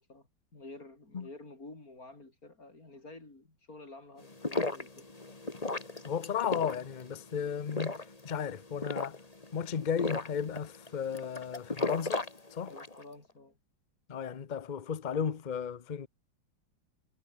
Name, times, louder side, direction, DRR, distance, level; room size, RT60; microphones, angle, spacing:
voice 1, 0.0-5.1 12.6-13.6, left 2 dB, 40° left, 5.7 m, -50 dB
sound 1, 4.2-13.0, left 2 dB, 20° left, 2.0 m, -37 dB
voice 2, 6.0-8.0 8.2-9.2 9.5-12.2 12.5-12.7 14.1-16.1, left 7 dB, 80° left, 0.4 m, -34 dB
omnidirectional pair, 2.3 m